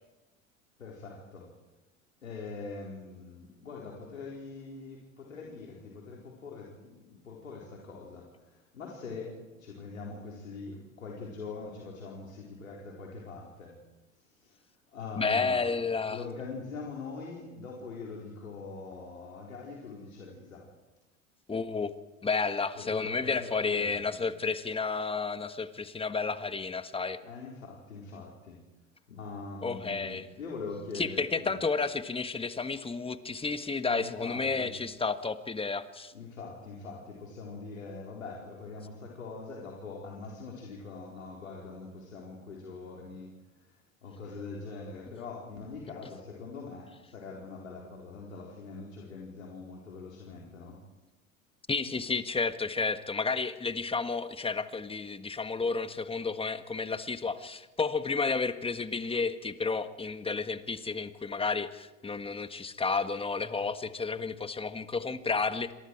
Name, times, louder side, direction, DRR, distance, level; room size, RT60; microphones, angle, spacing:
voice 1, 0.8-1.5 2.2-13.8 14.1-14.6 14.9-15.7 16.1-20.7 22.7-24.2 27.2-28.6 29.1-31.6 33.8-34.7 36.1-50.8, left 4 dB, 80° left, -2 dB, 4.5 m, -43 dB
voice 2, 15.2-16.2 21.5-21.9 22.2-27.2 29.6-30.3 30.9-36.1 51.7-65.7, left 4 dB, 15° left, 10 dB, 1.6 m, -31 dB
28.0 x 26.5 x 4.8 m, 1.1 s
figure-of-eight pair, 75°, 39 cm